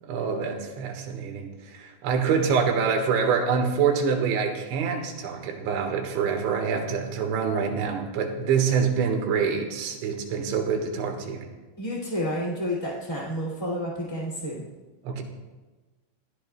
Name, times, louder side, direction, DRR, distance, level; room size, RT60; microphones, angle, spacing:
voice 1, 0.0-11.5 15.0-15.2, right 6 dB, 75° right, 4 dB, 3.8 m, -26 dB
voice 2, 11.8-14.6, equal, 15° left, -5 dB, 1.1 m, -30 dB
28.5 x 15.5 x 2.4 m, 1.2 s
omnidirectional pair, 5.5 m